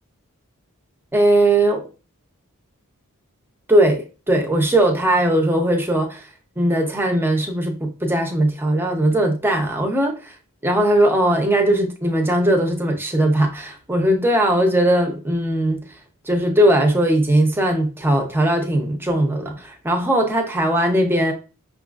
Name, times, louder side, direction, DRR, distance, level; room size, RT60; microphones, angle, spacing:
voice 1, 1.1-1.8 3.7-6.3 6.6-10.3 10.6-15.8 16.2-21.3, right 1 dB, 10° right, 0.7 m, -19 dB
5.8 x 2.4 x 2.3 m
head